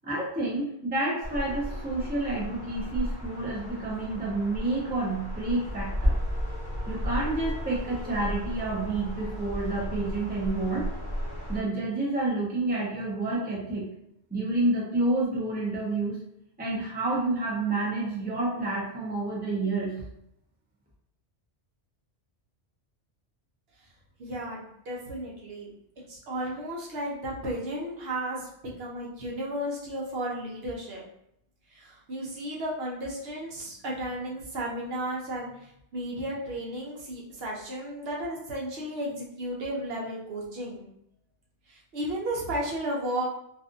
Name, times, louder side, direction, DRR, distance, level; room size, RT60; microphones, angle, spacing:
voice 1, 0.0-6.2 6.9-10.9 11.5-13.8 14.3-16.2 16.6-19.9, right 2 dB, 10° right, -4 dB, 0.6 m, -29 dB
sound 1, 1.2-11.6, equal, 5° left, 1.0 m, -33 dB
voice 2, 24.2-25.7 26.1-28.5 28.8-31.0 31.7-40.9 41.7-43.3, right 1 dB, 70° right, -3 dB, 0.9 m, -34 dB
2.5 x 2.4 x 2.5 m, 0.75 s
omnidirectional pair, 1.1 m